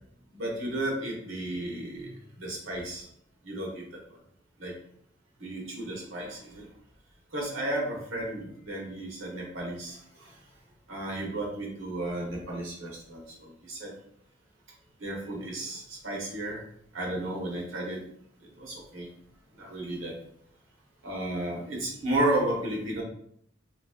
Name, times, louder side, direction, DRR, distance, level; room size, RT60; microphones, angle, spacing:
voice 1, 0.3-3.1 3.4-3.8 4.6-4.7 5.4-6.7 7.3-10.3 10.9-13.9 15.0-16.6 16.9-18.0 18.5-19.1 19.6-20.1 21.0-23.0, right 1 dB, 85° right, -2 dB, 1.1 m, -33 dB
3.5 x 2.9 x 2.3 m, 0.67 s
head